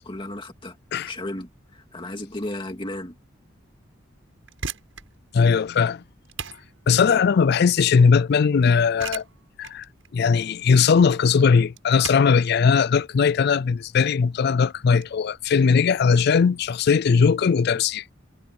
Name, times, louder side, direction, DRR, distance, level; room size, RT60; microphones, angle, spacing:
voice 1, 0.0-0.8 1.1-3.1, left 1 dB, 25° left, 2.4 m, -34 dB
sound 1, 4.3-15.1, right 6 dB, 90° right, 7.2 m, -40 dB
voice 2, 5.3-6.0 6.9-9.2 9.6-9.9 10.1-18.0, left 5 dB, 55° left, 0.4 m, -19 dB
head